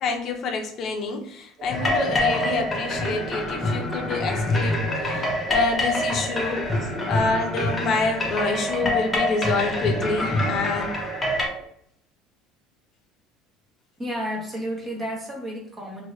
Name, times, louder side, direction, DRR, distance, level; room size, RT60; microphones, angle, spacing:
voice 1, 0.0-6.7 7.1-10.9, left 3 dB, 45° left, 3 dB, 0.6 m, -27 dB
sound 1, 1.6-11.6, right 5 dB, 35° right, 0.4 m, -38 dB
sound 2, 1.7-11.5, left 2 dB, 15° left, 0.8 m, -26 dB
voice 2, 14.0-16.1, equal, 20° right, -1 dB, 1.0 m, -32 dB
2.6 x 2.6 x 3.1 m, 0.66 s
cardioid pair, 130°, 0 cm